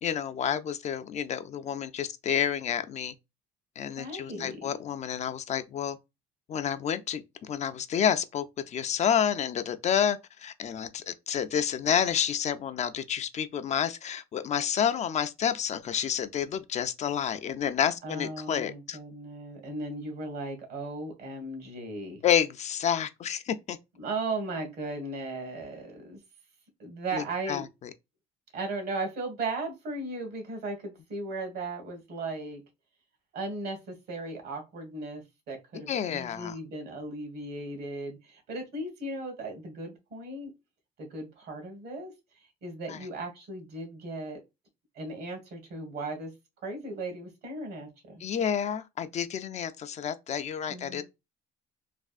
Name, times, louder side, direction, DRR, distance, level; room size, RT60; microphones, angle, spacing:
voice 1, 0.0-3.1 3.8-6.0 6.5-19.0 22.2-23.8 27.1-27.6 35.9-36.5 42.9-43.0 48.2-51.0, left 8 dB, 45° left, 0.4 m, -29 dB
voice 2, 4.0-4.8 18.0-22.2 24.0-26.2 26.8-27.6 28.5-32.6 33.3-40.5 41.0-42.1 42.6-44.4 44.9-46.3 46.6-48.2 50.7-51.0, right 2 dB, 70° right, 1.5 m, -37 dB
3.3 x 2.4 x 2.4 m
cardioid pair, 110°, 17 cm